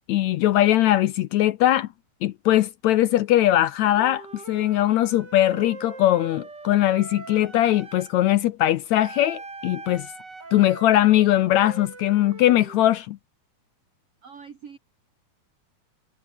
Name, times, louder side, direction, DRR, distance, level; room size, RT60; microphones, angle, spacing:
voice 1, 0.1-1.9 2.2-10.1 10.5-13.2, left 13 dB, 75° left, 1.8 m, -20 dB
Wind instrument woodwind instrument, 3.9-8.2 8.9-12.8, right 3 dB, 30° right, 4.7 m, -41 dB
voice 2, 14.2-14.8, right 6 dB, 50° right, 3.1 m, -43 dB
omnidirectional pair, 3.8 m